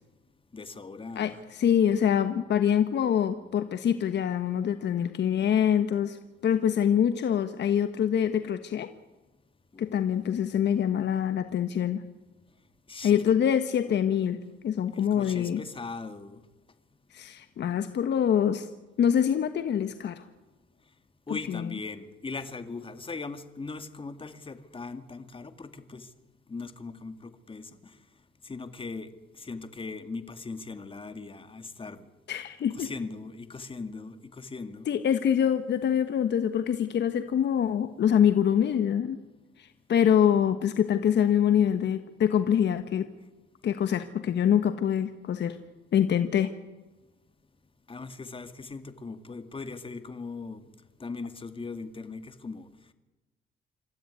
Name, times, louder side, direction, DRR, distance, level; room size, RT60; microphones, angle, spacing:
voice 1, 0.5-1.4 9.7-10.7 12.9-13.4 14.9-16.4 21.3-26.1 26.5-27.9 28.4-29.1 29.4-32.0 32.7-34.9 47.9-50.7 51.0-52.7, left 4 dB, 25° left, 10 dB, 2.0 m, -39 dB
voice 2, 1.2-6.2 6.4-8.9 9.8-12.0 13.0-15.6 17.1-18.7 19.0-20.2 21.5-21.6 32.3-32.9 34.9-39.2 39.6-43.1 43.6-45.6 45.9-46.6, left 9 dB, 60° left, 9 dB, 1.2 m, -25 dB
27.5 x 13.5 x 9.6 m, 1.1 s
cardioid pair, 90°, 20 cm